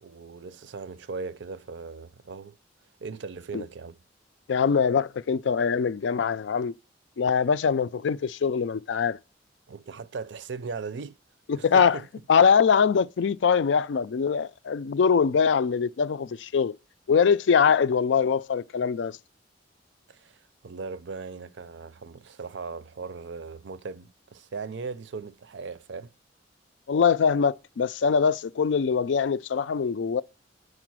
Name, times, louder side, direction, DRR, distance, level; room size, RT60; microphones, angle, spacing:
voice 1, 0.0-2.6 3.0-4.0 9.7-11.2 11.6-12.1 20.1-20.4 20.6-26.1, right 4 dB, 70° right, 0.5 m, -38 dB
voice 2, 4.5-6.7 7.2-9.2 11.5-12.0 12.3-16.7 17.1-19.2 26.9-30.2, left 6 dB, 75° left, 0.4 m, -23 dB
9.3 x 4.9 x 6.1 m
head